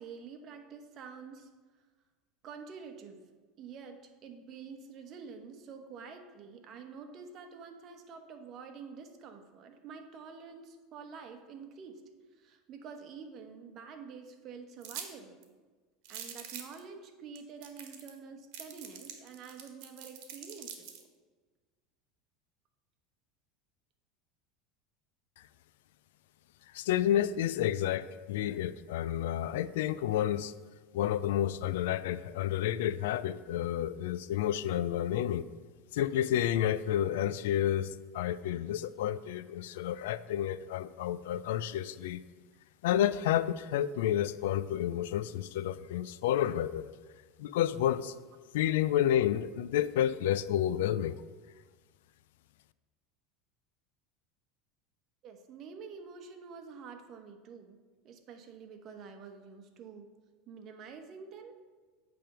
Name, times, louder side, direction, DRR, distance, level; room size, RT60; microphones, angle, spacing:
voice 1, 0.0-1.5 2.4-3.3 3.6-12.0 12.3-15.4 16.1-20.9 51.1-51.2 55.2-57.8 58.0-60.1 60.5-61.6, right 5 dB, 45° right, 5 dB, 1.0 m, -48 dB
sound 1, 14.8-15.1 15.4-15.5 16.0-16.8 17.4-17.5 17.6-18.2 18.5-21.0, right 9 dB, 70° right, 1.2 m, -44 dB
voice 2, 26.7-30.5 30.9-35.5 35.9-42.2 42.8-46.9 47.4-48.1 48.5-51.2, left 11 dB, 85° left, 16 dB, 0.3 m, -30 dB
9.1 x 3.5 x 6.8 m, 1.4 s
supercardioid pair, 120°, 0 cm